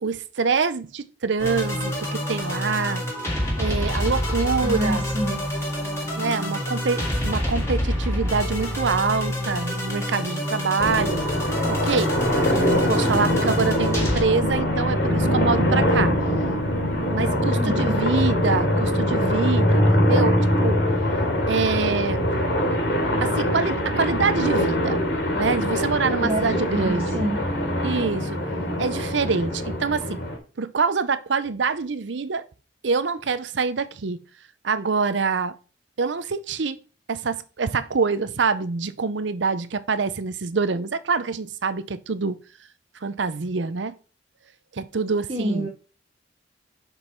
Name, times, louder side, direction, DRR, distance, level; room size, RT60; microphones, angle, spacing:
voice 1, 0.0-3.1 3.6-5.1 6.2-11.3 11.7-12.2 12.5-16.1 17.1-20.8 21.5-22.3 23.2-25.1 25.4-27.2 27.8-28.4 28.8-30.2 30.6-32.5 32.8-34.2 34.6-35.5 36.0-36.8 37.1-42.4 43.0-44.0 44.7-45.7, right 4 dB, 80° right, 0.7 m, -25 dB
sound 1, 1.4-14.2, left 1 dB, 15° left, 2.6 m, -27 dB
voice 2, 4.6-5.5 17.4-18.0 26.1-27.5 45.3-45.7, right 1 dB, 30° right, 1.1 m, -28 dB
sound 2, 10.8-30.4, equal, 70° left, 3.1 m, -23 dB
6.1 x 5.4 x 4.4 m
head